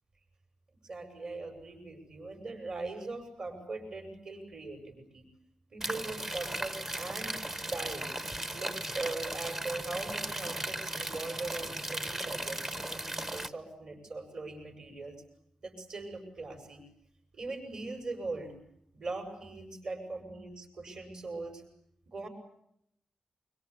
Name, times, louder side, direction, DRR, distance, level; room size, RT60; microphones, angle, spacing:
voice 1, 0.8-5.3 5.7-8.1 8.5-15.2 15.6-16.9 17.3-18.6 18.9-21.6 22.1-22.3, right 3 dB, 45° right, 5 dB, 7.2 m, -40 dB
sound 1, 5.8-13.5, right 1 dB, 20° right, 1.2 m, -37 dB
26.0 x 25.0 x 8.7 m, 0.74 s
wide cardioid pair, 165°, 2 cm